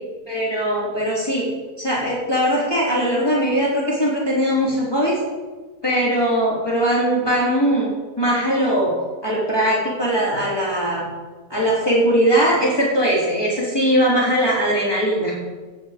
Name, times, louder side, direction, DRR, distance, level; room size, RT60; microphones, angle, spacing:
voice 1, 0.3-1.5 1.8-5.2 5.8-8.9 9.2-11.0 11.5-15.3, equal, 15° left, -6 dB, 3.8 m, -20 dB
16.5 x 8.4 x 5.3 m, 1.3 s
omnidirectional pair, 1.7 m